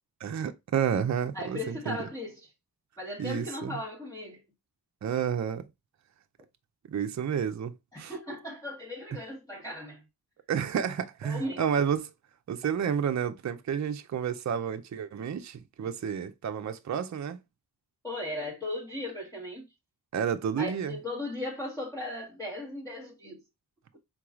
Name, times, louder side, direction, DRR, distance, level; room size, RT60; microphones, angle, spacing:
voice 1, 0.2-2.1 3.2-3.8 5.0-5.6 6.9-8.1 10.5-12.1 12.5-17.4 20.1-20.9, right 8 dB, 45° right, 0.5 m, -30 dB
voice 2, 1.3-2.5 3.0-4.4 7.9-10.0 11.2-11.6 18.0-19.6 20.6-23.4, left 1 dB, 10° left, 1.2 m, -37 dB
4.6 x 3.8 x 2.3 m
wide cardioid pair, 90°, 39 cm